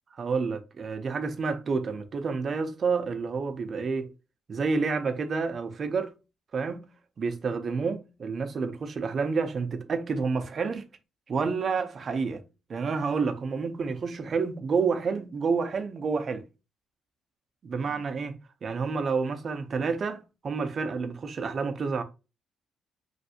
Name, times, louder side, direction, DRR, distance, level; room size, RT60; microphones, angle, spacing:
voice 1, 0.2-4.1 4.5-6.1 6.5-6.9 7.2-10.8 11.3-12.4 12.7-16.4 17.6-18.3 18.6-22.0, right 5 dB, 45° right, 0.5 m, -29 dB
3.1 x 2.6 x 2.7 m
cardioid pair, 90°, 0 cm